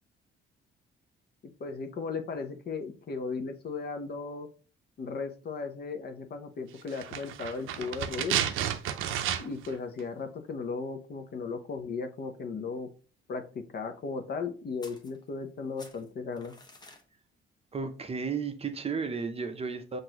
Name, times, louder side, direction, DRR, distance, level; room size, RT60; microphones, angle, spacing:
voice 1, 1.6-4.5 5.0-8.4 9.4-12.9 13.3-16.5, left 4 dB, 55° left, 0.8 m, -36 dB
sound 1, 6.9-9.7 10.0-10.1, right 10 dB, 85° right, 0.5 m, -31 dB
sound 2, 14.8-15.5 15.8-17.1, left 2 dB, 20° left, 0.8 m, -52 dB
voice 2, 17.7-20.0, right 5 dB, 30° right, 0.6 m, -33 dB
5.9 x 2.6 x 2.8 m
cardioid pair, 90°, 20 cm